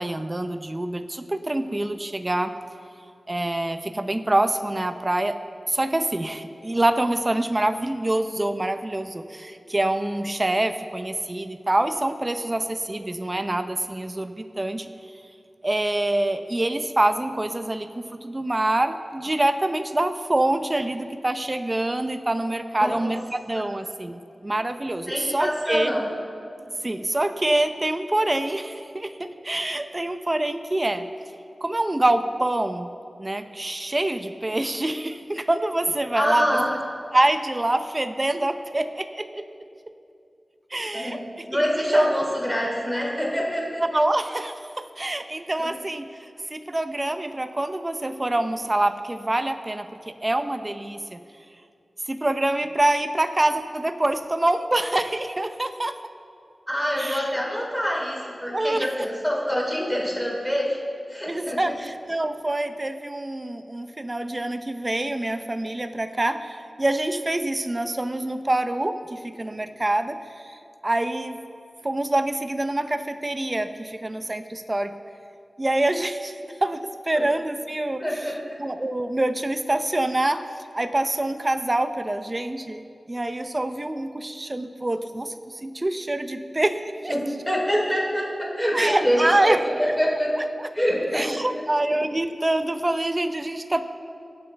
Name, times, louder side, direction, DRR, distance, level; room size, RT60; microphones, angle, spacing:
voice 1, 0.0-2.5 3.3-5.4 5.7-14.9 15.6-25.9 26.8-31.1 31.6-32.9 33.2-36.8 37.1-39.5 40.7-41.2 41.5-41.6 41.9-42.1 43.9-46.1 46.5-51.2 52.1-56.0 57.0-57.3 58.5-58.9 61.2-71.4 71.8-75.0 75.6-76.3 76.6-78.3 78.6-80.5 80.7-87.1 88.7-89.6 90.6-90.7 91.1-93.8, right 1 dB, 30° right, 9 dB, 0.6 m, -26 dB
voice 2, 22.8-23.1 25.1-26.1 36.1-36.7 40.9-43.8 45.6-45.7 56.7-60.8 61.1-61.7 77.1-77.3 78.0-78.6 87.1-90.3 90.7-91.6, equal, 5° left, -3 dB, 3.5 m, -25 dB
23.5 x 7.9 x 3.4 m, 2.5 s
wide cardioid pair, 65°, 0 cm